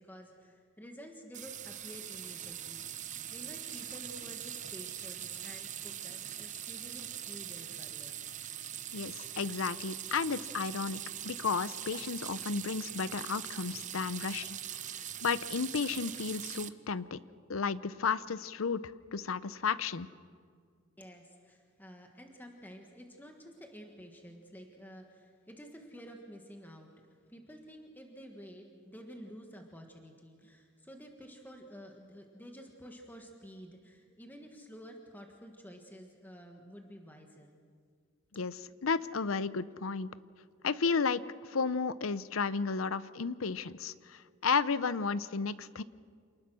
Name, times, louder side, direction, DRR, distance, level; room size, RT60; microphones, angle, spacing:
voice 1, 0.0-2.8 3.3-8.2 21.0-26.9 27.3-37.6, equal, 10° left, 3 dB, 1.5 m, -51 dB
sound 1, 1.3-16.7, right 10 dB, 35° right, 0.7 m, -42 dB
voice 2, 8.9-14.6 15.2-17.2 17.5-18.8 19.1-20.1 38.3-40.1 40.6-41.2 41.5-45.8, left 5 dB, 75° left, 16 dB, 0.7 m, -33 dB
28.0 x 19.5 x 6.3 m, 2.1 s
head